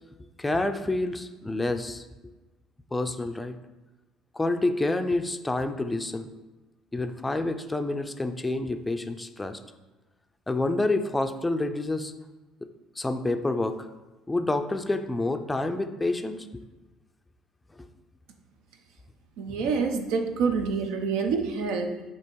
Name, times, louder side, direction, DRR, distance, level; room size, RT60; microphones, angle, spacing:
voice 1, 0.4-2.0 2.9-3.6 4.4-6.3 6.9-9.6 10.5-12.1 13.0-13.7 14.3-16.6, left 2 dB, 10° left, 7 dB, 0.4 m, -28 dB
voice 2, 19.4-22.0, right 5 dB, 80° right, 6 dB, 0.8 m, -27 dB
8.3 x 2.9 x 4.6 m, 1.2 s
cardioid pair, 125°, 0 cm